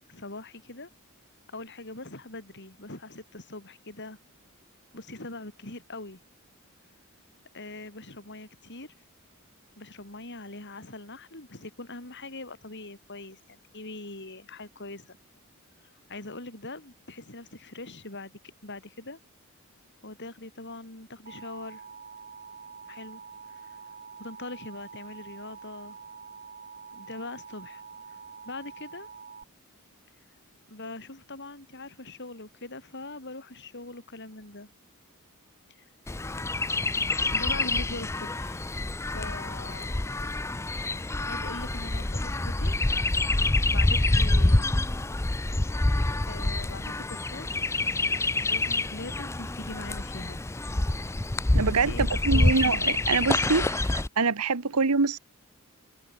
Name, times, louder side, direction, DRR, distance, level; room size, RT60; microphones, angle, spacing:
voice 1, 0.1-0.9 1.5-4.2 4.9-6.2 7.5-8.9 9.8-15.2 16.1-19.2 20.0-21.8 22.9-23.2 23.5-23.7 24.2-26.0 26.9-27.8 28.4-29.1 30.7-34.7 37.3-38.7 39.0-39.9 41.2-42.7 43.7-44.7 46.3-47.5 47.8-47.9 48.5-50.4 51.7-52.6, left 2 dB, 50° left, 6.5 m, -42 dB
Alarm, 21.3-29.4, right 5 dB, 40° right, 6.8 m, -46 dB
Chirp tweet, 36.1-54.1, left 2 dB, 10° left, 0.5 m, -27 dB
voice 2, 51.5-55.2, right 4 dB, 90° right, 1.2 m, -25 dB
head